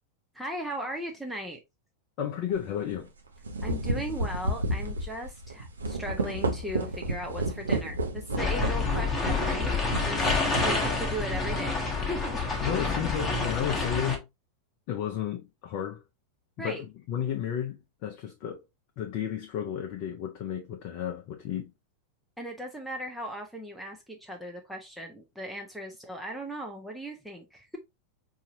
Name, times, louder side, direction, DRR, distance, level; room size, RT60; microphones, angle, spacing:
voice 1, 0.3-1.6 3.6-10.3 10.6-11.8 12.1-12.7 16.6-16.8 22.4-27.8, right 1 dB, ahead, 0.7 m, -37 dB
voice 2, 2.2-3.1 12.6-14.2 14.9-16.0 16.6-18.6 19.0-21.7, left 9 dB, 45° left, 0.6 m, -32 dB
sound 1, 2.5-2.7 3.3-11.7, right 1 dB, 75° right, 0.8 m, -32 dB
sound 2, 8.4-14.2, left 3 dB, 20° left, 1.0 m, -28 dB
4.8 x 2.8 x 2.6 m
figure-of-eight pair, 90°, 0 cm